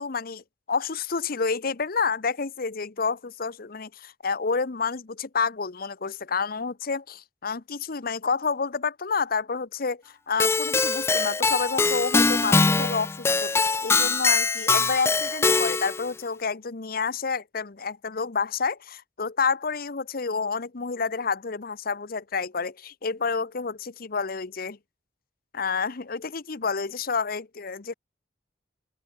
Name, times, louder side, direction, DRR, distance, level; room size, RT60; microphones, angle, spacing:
voice 1, 0.0-0.4 0.7-24.8 25.5-27.9, left 5 dB, 55° left, 0.9 m, -29 dB
Keyboard (musical), 10.4-16.1, left 4 dB, 15° left, 0.3 m, -22 dB
open air
head